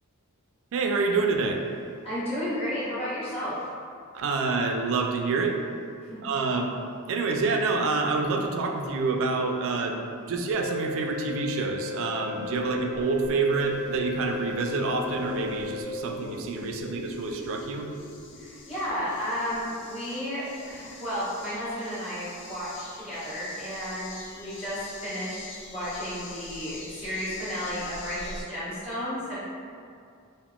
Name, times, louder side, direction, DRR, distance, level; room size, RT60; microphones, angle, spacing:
voice 1, 0.7-1.6 4.1-5.6 6.2-6.7 7.1-10.0 10.3-17.9, right 4 dB, 65° right, 3 dB, 0.3 m, -27 dB
voice 2, 2.0-3.7 6.0-6.2 18.3-29.4, equal, 25° left, -12 dB, 1.1 m, -33 dB
sound 1, 10.5-15.8, left 6 dB, 5° left, 1.4 m, -36 dB
sound 2, 12.5-19.3 19.5-19.6, left 1 dB, 85° left, 1.0 m, -41 dB
sound 3, 13.5-28.4, left 3 dB, 55° left, 0.4 m, -46 dB
3.6 x 2.0 x 2.3 m, 2.3 s
head